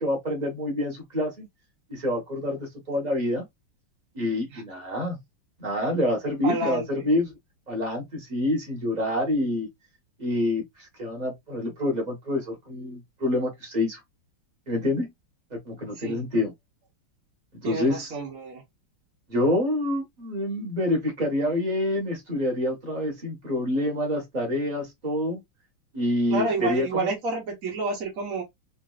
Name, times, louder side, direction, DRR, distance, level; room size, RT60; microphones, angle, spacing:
voice 1, 0.0-1.5 1.9-3.4 4.1-5.2 5.6-7.3 7.7-9.7 10.2-14.0 14.7-15.1 15.6-16.5 17.6-18.1 19.3-25.4 25.9-27.1, left 1 dB, 25° right, 1.1 m, -27 dB
voice 2, 6.4-7.1 15.9-16.3 17.6-18.6 26.3-28.4, right 3 dB, 55° right, 1.1 m, -29 dB
4.0 x 2.6 x 2.3 m
omnidirectional pair, 2.4 m